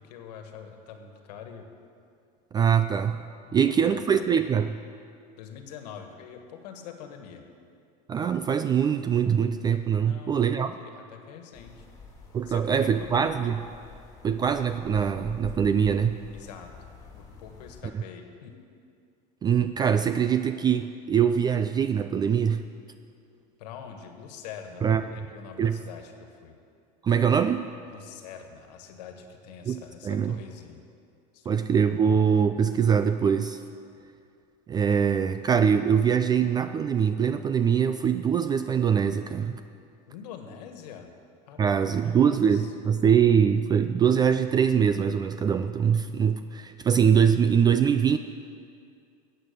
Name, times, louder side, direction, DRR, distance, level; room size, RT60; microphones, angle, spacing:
voice 1, 0.0-1.7 3.5-4.3 5.4-7.4 10.0-11.8 12.4-13.3 16.3-16.7 17.1-18.5 23.6-26.6 27.9-30.8 31.3-31.5 40.1-41.1 41.5-42.7, left 7 dB, 85° left, 5 dB, 1.6 m, -44 dB
voice 2, 2.5-3.2 3.5-4.8 8.1-10.7 12.3-13.6 14.2-16.2 19.4-22.6 24.8-25.0 25.6-25.8 27.0-27.6 29.7-29.8 30.0-30.4 31.5-33.6 34.7-39.5 41.6-48.2, right 7 dB, 20° right, 10 dB, 0.3 m, -23 dB
sound 1, 11.5-17.8, left 4 dB, 15° left, 2.2 m, -46 dB
14.0 x 8.8 x 6.7 m, 2.4 s
supercardioid pair, 135°, 20 cm